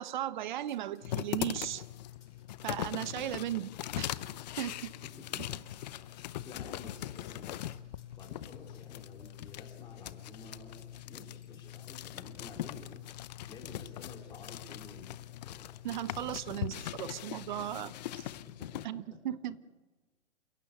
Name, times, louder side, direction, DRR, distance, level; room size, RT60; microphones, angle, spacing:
voice 1, 0.0-1.8 2.6-3.7 4.0-4.1 4.6-4.9 15.8-18.3 18.8-19.6, right 12 dB, 40° right, 18 dB, 0.9 m, -36 dB
sound 1, 0.7-14.8 15.4-15.5 16.0-16.1 16.5-16.7, left 6 dB, 75° left, 5.1 m, -68 dB
sound 2, 1.0-18.9, left 13 dB, 35° left, 0.8 m, -41 dB
voice 2, 5.2-5.6 6.1-7.6 8.2-13.0 13.4-15.2 15.4-15.7 18.4-19.0 19.3-19.4, left 3 dB, 10° left, 0 dB, 3.5 m, -51 dB
28.0 x 16.5 x 8.3 m, 1.2 s
hypercardioid pair, 145°, 36 cm